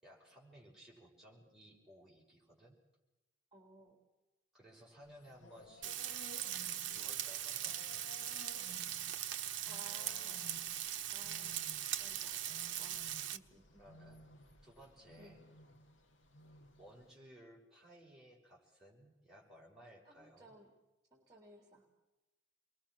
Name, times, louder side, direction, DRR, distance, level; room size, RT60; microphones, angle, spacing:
voice 1, 0.0-2.8 4.5-6.0 6.9-8.5 12.0-12.6 13.8-14.3 14.6-15.5 16.8-20.6, equal, ahead, -5 dB, 6.1 m, -59 dB
voice 2, 3.5-4.0 9.6-10.6 11.1-11.6 12.0-12.5 12.8-13.0 13.3-13.8 15.2-15.4 20.0-20.7 21.1-21.9, right 2 dB, 20° right, 1 dB, 3.3 m, -59 dB
sound 1, 5.0-17.1, left 2 dB, 65° left, 1.6 m, -58 dB
Frying (food), 5.8-13.4, right 11 dB, 60° right, 1.0 m, -40 dB
28.5 x 22.0 x 6.3 m, 1.0 s
head